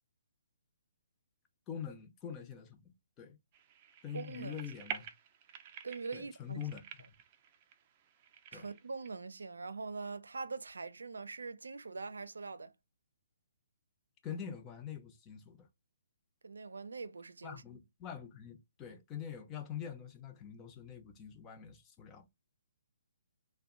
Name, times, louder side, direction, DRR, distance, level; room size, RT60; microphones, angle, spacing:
voice 1, 1.7-3.4 4.0-5.1 6.1-6.8 8.5-8.7 14.2-15.7 17.4-22.5, left 8 dB, 20° left, 0.6 m, -45 dB
sound 1, 3.5-9.1, right 8 dB, 30° right, 0.5 m, -48 dB
voice 2, 4.1-4.6 5.8-6.6 8.5-12.7 16.4-17.6, right 4 dB, 90° right, 0.5 m, -43 dB
2.4 x 2.2 x 3.7 m
hypercardioid pair, 150°, 0 cm